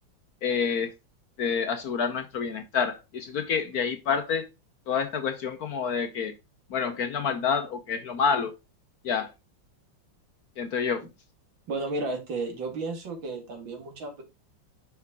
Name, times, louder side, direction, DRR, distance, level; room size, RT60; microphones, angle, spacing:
voice 1, 0.4-0.9 1.4-4.5 4.9-6.3 6.7-8.6 9.0-9.3 10.6-11.1, left 6 dB, 60° left, 1.0 m, -28 dB
voice 2, 11.7-14.2, right 3 dB, 75° right, 2.5 m, -33 dB
6.1 x 5.6 x 3.5 m
omnidirectional pair, 2.1 m